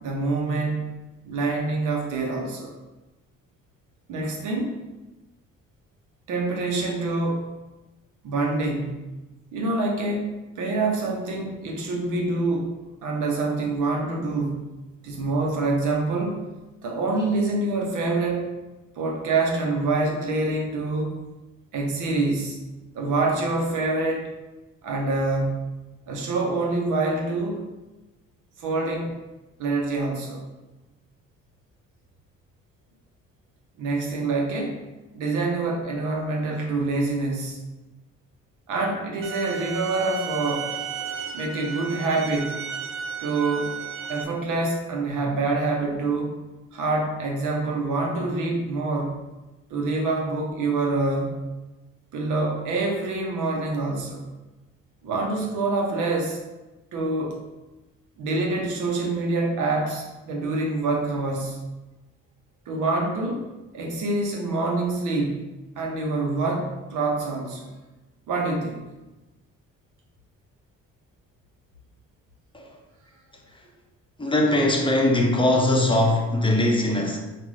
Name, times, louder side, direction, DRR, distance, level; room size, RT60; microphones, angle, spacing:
voice 1, 0.0-0.9 1.2-2.7 4.1-4.8 6.3-7.4 8.2-9.1 9.5-12.7 13.0-14.6 15.0-16.4 16.8-18.5 19.0-21.2 21.7-22.6 22.9-24.3 24.8-25.7 26.1-27.6 28.6-29.1 29.6-30.4 33.8-34.8 35.1-37.6 38.7-40.7 41.3-42.6 43.2-43.8 44.1-46.4 46.7-49.2 49.7-51.4 52.1-54.2 55.0-56.4 56.9-57.4 58.2-61.7 62.7-63.4 63.7-65.4 65.8-67.7 68.3-68.8, right 3 dB, 80° right, 0 dB, 1.0 m, -26 dB
sound 1, 39.2-44.2, right 7 dB, 45° right, 0.5 m, -34 dB
voice 2, 73.3-73.7 74.2-77.2, left 1 dB, 15° left, 0 dB, 0.7 m, -21 dB
5.0 x 2.5 x 3.2 m, 1.1 s
cardioid pair, 90°, 30 cm